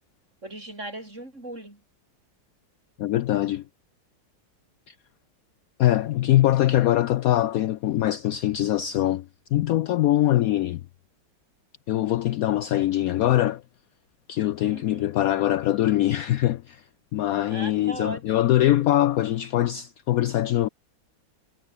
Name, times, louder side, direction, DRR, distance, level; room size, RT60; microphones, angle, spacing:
voice 1, 0.4-1.8 14.6-15.1 17.5-18.4, right 1 dB, 35° right, 7.7 m, -38 dB
voice 2, 3.0-3.6 4.9-5.0 5.8-9.3 9.5-10.8 11.9-13.6 14.3-16.8 17.1-20.7, left 13 dB, 80° left, 0.7 m, -22 dB
omnidirectional pair, 2.1 m